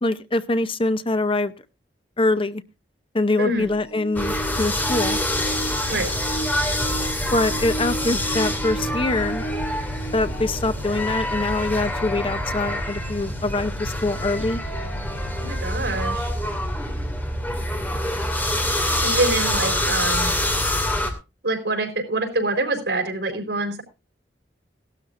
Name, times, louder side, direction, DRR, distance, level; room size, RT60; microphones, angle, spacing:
voice 1, 0.0-1.5 2.2-2.6 3.1-5.2 7.3-9.4 10.1-14.6, left 2 dB, 30° left, 0.7 m, -24 dB
sound 1, 3.6-11.2 11.9-12.0 13.0-13.1, right 2 dB, 65° left, 2.3 m, -34 dB
sound 2, 4.2-21.1, left 1 dB, 10° left, 2.5 m, -26 dB
voice 2, 15.4-16.3 19.0-20.5 21.4-23.8, right 2 dB, 75° right, 4.2 m, -25 dB
17.5 x 12.5 x 2.6 m
head